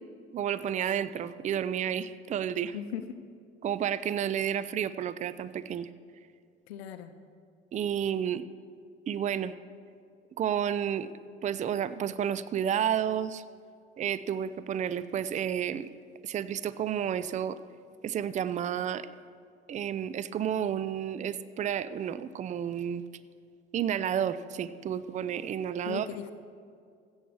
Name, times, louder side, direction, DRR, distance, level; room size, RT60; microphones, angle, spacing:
voice 1, 0.3-2.7 3.6-5.9 7.7-8.5 9.1-9.5 10.4-11.1 11.4-13.4 14.0-15.9 16.2-17.6 18.0-19.1 19.7-23.0 23.7-26.1, right 9 dB, 25° right, 15 dB, 0.4 m, -31 dB
voice 2, 2.7-3.2 6.7-7.1 25.8-26.3, left 9 dB, 70° left, 10 dB, 0.7 m, -38 dB
16.0 x 7.2 x 4.7 m, 2.3 s
figure-of-eight pair, 60°, 33 cm